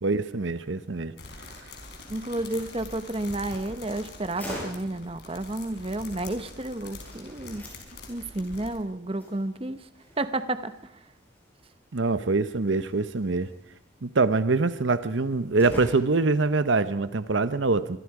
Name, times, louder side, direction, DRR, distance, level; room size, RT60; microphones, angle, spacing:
voice 1, 0.0-1.1 11.9-13.5 14.0-18.0, right 3 dB, 75° right, 0.8 m, -24 dB
sound 1, 1.2-8.8, left 2 dB, 55° left, 4.5 m, -44 dB
voice 2, 2.1-7.6 8.1-9.9 10.2-10.9, right 2 dB, 30° right, 0.9 m, -31 dB
sound 2, 2.6-16.5, equal, 10° left, 7.7 m, -47 dB
25.0 x 23.5 x 4.9 m
head